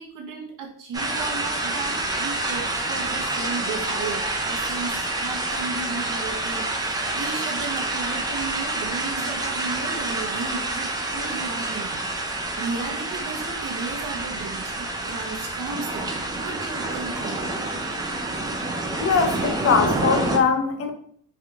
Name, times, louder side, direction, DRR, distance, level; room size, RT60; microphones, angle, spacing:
voice 1, 0.0-17.5, right 4 dB, 55° right, 2 dB, 0.9 m, -35 dB
sound 1, 0.9-20.4, right 2 dB, 10° right, 0.4 m, -28 dB
voice 2, 19.0-20.9, left 5 dB, 40° left, 5 dB, 0.6 m, -21 dB
3.4 x 2.8 x 2.4 m, 0.63 s
cardioid pair, 115°, 39 cm